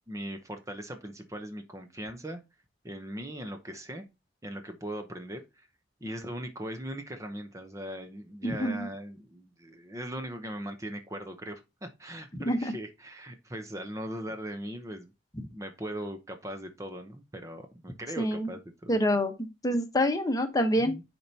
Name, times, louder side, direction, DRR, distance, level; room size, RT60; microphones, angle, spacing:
voice 1, 0.1-2.4 2.8-4.0 4.4-5.7 6.0-15.1 15.5-19.0 20.8-21.0, equal, 15° right, 6 dB, 0.8 m, -39 dB
voice 2, 8.4-8.9 12.5-12.7 18.2-18.5 18.9-20.9, equal, 20° left, 7 dB, 1.0 m, -27 dB
10.0 x 4.4 x 2.8 m, 0.25 s
head